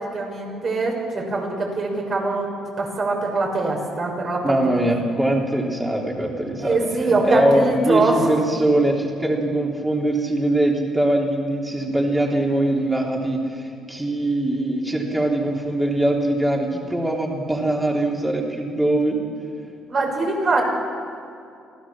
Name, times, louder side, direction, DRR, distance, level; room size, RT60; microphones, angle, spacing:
voice 1, 0.1-2.5 2.8-4.4 6.6-8.2 19.9-20.6, right 3 dB, 50° right, 0 dB, 6.6 m, -22 dB
voice 2, 4.4-19.2, right 1 dB, 10° right, -1 dB, 3.4 m, -22 dB
25.5 x 16.5 x 7.4 m, 2.4 s
cardioid pair, 85°, 0 cm